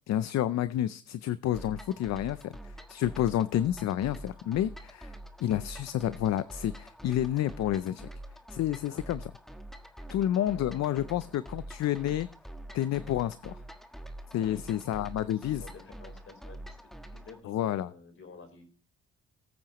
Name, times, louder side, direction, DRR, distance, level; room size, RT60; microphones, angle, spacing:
voice 1, 0.1-5.1 5.4-8.1 8.5-9.3 10.1-12.3 12.7-13.6 14.3-15.6 17.4-17.9, left 12 dB, 60° left, 15 dB, 0.5 m, -30 dB
sound 1, 1.5-17.4, right 1 dB, ahead, 1.3 m, -45 dB
voice 2, 3.0-3.4 8.9-9.1 10.0-11.2 14.3-16.8 17.1-18.6, left 4 dB, 45° left, 5 dB, 4.2 m, -52 dB
19.0 x 8.7 x 3.0 m, 0.41 s
cardioid pair, 90°, 30 cm